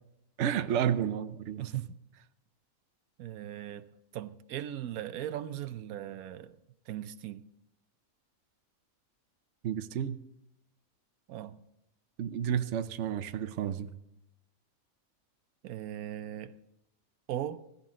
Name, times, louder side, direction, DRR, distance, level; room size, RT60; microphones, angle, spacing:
voice 1, 0.4-1.6 9.6-10.2 12.2-13.9, right 9 dB, 60° right, 1.0 m, -31 dB
voice 2, 1.6-2.2 3.2-6.6 6.9-7.4 11.3-11.6 15.6-16.5 17.3-17.6, right 12 dB, 85° right, 1.2 m, -39 dB
16.5 x 15.0 x 3.7 m
omnidirectional pair, 1.5 m